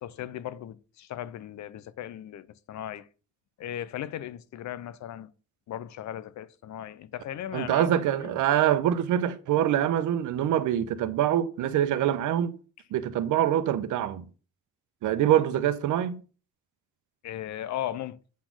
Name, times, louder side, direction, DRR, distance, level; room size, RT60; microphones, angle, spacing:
voice 1, 0.0-3.1 3.6-5.3 5.7-7.9 8.2-8.4 17.2-18.2, left 11 dB, 65° left, 0.7 m, -37 dB
voice 2, 7.5-12.5 12.9-14.2 15.0-16.2, right 11 dB, 80° right, 0.9 m, -25 dB
8.4 x 4.1 x 6.1 m
cardioid pair, 90°, 30 cm